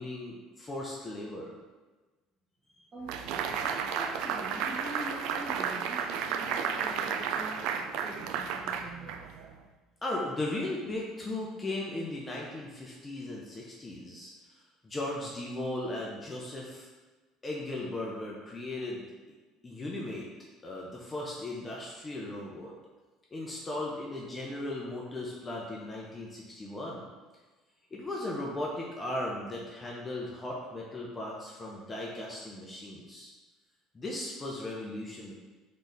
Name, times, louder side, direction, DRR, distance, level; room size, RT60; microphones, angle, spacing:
voice 1, 0.0-1.5 10.0-14.3 14.8-16.9 17.4-19.0 19.6-20.3 20.6-22.7 23.3-27.0 27.9-33.3 33.9-35.3, left 1 dB, 20° left, -3 dB, 0.6 m, -37 dB
voice 2, 2.9-9.3, right 1 dB, 35° right, -5 dB, 1.5 m, -44 dB
sound 1, 3.1-9.5, right 7 dB, 70° right, 0.3 m, -33 dB
4.0 x 3.2 x 4.0 m, 1.3 s
cardioid pair, 145°, 0 cm